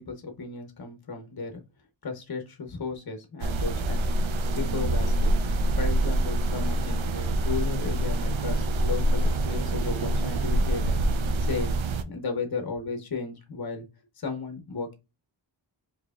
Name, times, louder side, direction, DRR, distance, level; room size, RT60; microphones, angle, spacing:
voice 1, 0.0-1.6 2.0-4.1 4.5-5.3 5.8-11.0 11.4-13.9 14.2-14.9, left 4 dB, 50° left, 5 dB, 0.9 m, -34 dB
sound 1, 3.4-12.0, right 1 dB, 80° right, 0.6 m, -25 dB
4.6 x 2.8 x 2.3 m, 0.26 s
wide cardioid pair, 75°, 46 cm